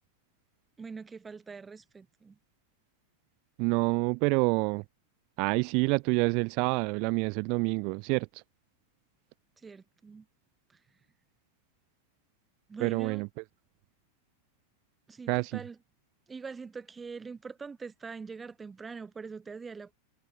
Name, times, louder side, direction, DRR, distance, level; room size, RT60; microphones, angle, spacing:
voice 1, 0.8-2.4 9.6-10.3 12.7-13.2 15.1-15.8 16.3-19.9, right 5 dB, 15° right, 1.1 m, -43 dB
voice 2, 3.6-4.8 5.4-8.4 12.8-13.3 15.3-15.6, right 32 dB, 45° right, 0.5 m, -27 dB
figure-of-eight pair, 90°, 0 cm